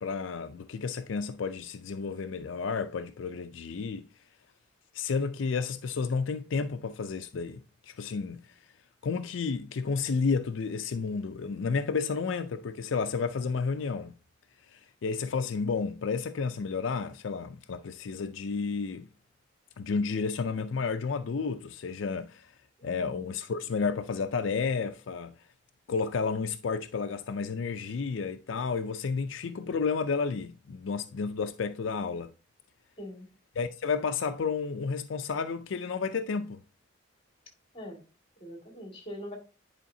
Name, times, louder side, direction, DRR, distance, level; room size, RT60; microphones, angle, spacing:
voice 1, 0.0-4.1 4.9-8.5 9.0-14.2 14.7-19.1 19.8-22.5 22.8-25.3 25.9-32.3 33.6-36.6, left 5 dB, 80° left, 0.4 m, -31 dB
voice 2, 22.8-23.3 33.0-33.3 37.7-38.0 38.4-39.4, equal, 30° left, 2.1 m, -43 dB
10.0 x 4.9 x 2.7 m
head